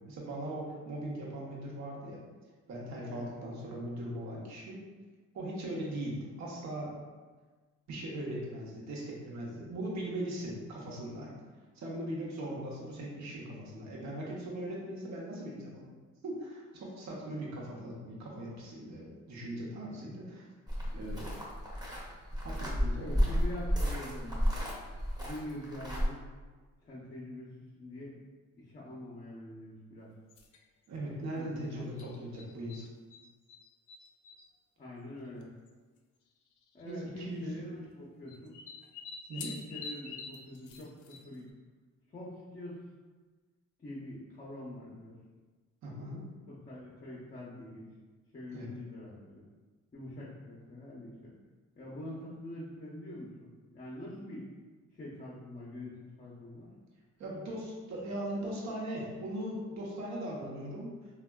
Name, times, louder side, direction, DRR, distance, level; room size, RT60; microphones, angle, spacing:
voice 1, 0.0-2.2 2.7-4.8 5.3-6.9 7.9-11.3 11.7-15.8 16.2-20.5 20.9-21.3 22.4-23.2 30.9-32.8 36.8-37.8 39.3-39.5 45.8-46.2 48.5-48.7 57.2-60.9, right 1 dB, 65° right, -4 dB, 0.8 m, -39 dB
sound 1, 20.7-26.0, equal, 15° right, 0.8 m, -32 dB
voice 2, 23.0-24.4 25.2-26.2 26.8-27.5 27.8-28.1 28.6-30.1 31.1-32.1 34.8-35.5 36.7-38.6 39.4-41.5 42.1-42.8 43.8-45.2 46.5-47.9 48.3-49.4 49.9-51.3 51.8-53.5 53.7-54.5 54.9-56.7, left 1 dB, 25° left, -6 dB, 0.6 m, -45 dB
sound 2, 30.3-30.6 32.0-33.2 33.5-34.5 35.4-35.5 35.7-35.8 36.7-37.0 38.3-41.5, left 5 dB, 80° left, 0.4 m, -46 dB
3.4 x 2.2 x 2.2 m, 1.3 s
cardioid pair, 90°, 30 cm